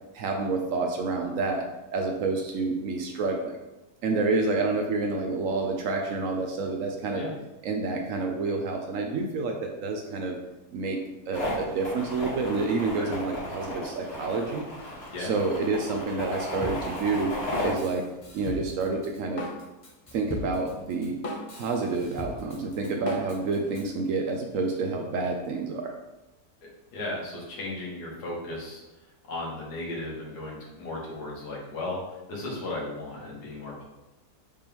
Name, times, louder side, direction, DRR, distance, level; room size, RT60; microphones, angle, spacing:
voice 1, 0.1-1.6 1.9-3.6 4.0-7.2 7.6-10.4 10.7-11.0 11.3-14.6 15.2-17.3 17.6-18.0 18.3-19.4 20.1-21.2 21.5-25.9, right 3 dB, 70° right, 2 dB, 0.8 m, -28 dB
sound 1, 11.3-17.7, left 1 dB, 60° left, 2.2 m, -34 dB
Drum kit, 16.6-23.9, left 1 dB, 35° left, 0.5 m, -39 dB
voice 2, 26.6-28.8 29.3-32.0 32.3-33.8, left 2 dB, 85° left, -4 dB, 1.8 m, -35 dB
5.2 x 2.9 x 3.4 m, 1.0 s
omnidirectional pair, 1.7 m